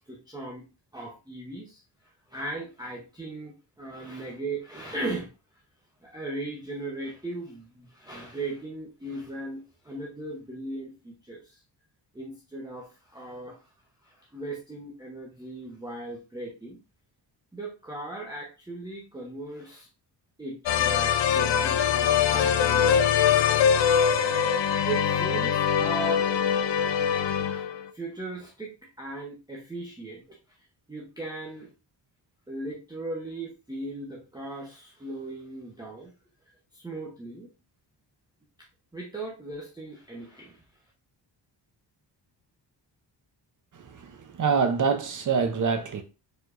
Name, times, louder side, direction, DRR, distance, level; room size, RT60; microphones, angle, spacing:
voice 1, 0.1-0.6 0.9-1.8 2.3-5.3 6.0-11.4 12.1-13.6 14.3-16.8 17.5-19.9 20.4-23.6 24.9-26.3 27.5-27.7 27.9-30.2 30.9-31.7 32.5-36.1 36.7-37.5 38.9-40.6, right 2 dB, 10° right, 0.8 m, -37 dB
sound 1, 20.7-27.8, left 8 dB, 75° left, 0.6 m, -23 dB
voice 2, 43.9-46.0, right 5 dB, 45° right, 0.7 m, -25 dB
4.7 x 4.4 x 2.5 m
wide cardioid pair, 165°, 44 cm